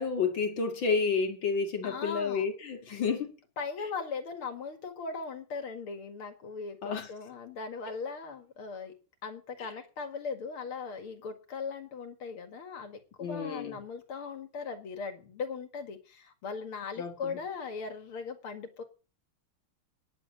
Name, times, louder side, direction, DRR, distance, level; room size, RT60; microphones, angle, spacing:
voice 1, 0.0-3.3 6.8-7.1 13.2-13.8 17.0-17.4, left 5 dB, 65° left, 2.4 m, -30 dB
voice 2, 1.8-2.5 3.6-8.9 9.2-18.8, left 5 dB, 80° left, 2.8 m, -39 dB
10.5 x 7.5 x 8.0 m
omnidirectional pair, 2.3 m